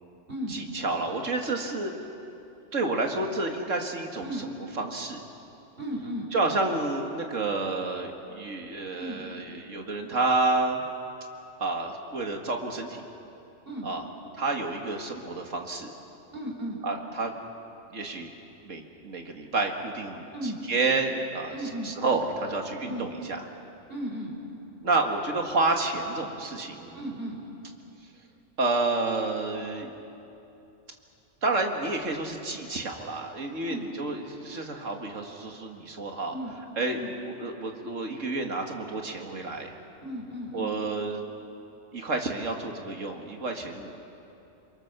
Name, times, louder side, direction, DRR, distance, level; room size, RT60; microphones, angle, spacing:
voice 1, 0.5-1.9 2.7-4.5 4.8-5.2 6.3-10.8 11.6-13.0 13.8-14.0 14.4-15.9 16.8-17.3 17.9-18.3 18.6-20.2 20.7-21.5 21.8-23.4 24.8-27.0 28.6-29.9 31.4-36.3 36.8-37.0 37.4-39.7 40.5-41.2 41.9-44.0, right 3 dB, 75° right, 3 dB, 2.4 m, -29 dB
voice 2, 5.8-6.2 9.0-9.3 13.6-13.9 16.3-16.8 20.3-20.6 21.5-22.0 22.9-23.1 23.9-24.3 26.9-27.4 33.6-33.8 36.3-36.5 36.9-37.1 40.0-40.7, equal, 45° right, 0 dB, 4.7 m, -35 dB
29.0 x 23.0 x 6.8 m, 2.8 s
omnidirectional pair, 1.3 m